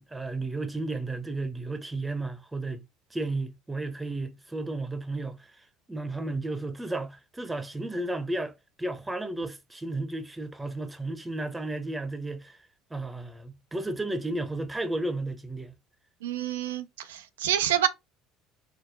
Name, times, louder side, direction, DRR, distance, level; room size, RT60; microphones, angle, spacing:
voice 1, 0.0-2.8 3.1-5.5 5.9-12.6 12.9-15.7, right 2 dB, 15° right, 0.8 m, -33 dB
voice 2, 16.2-17.9, right 10 dB, 90° right, 0.5 m, -27 dB
4.3 x 2.0 x 3.2 m
hypercardioid pair, 75°, 0 cm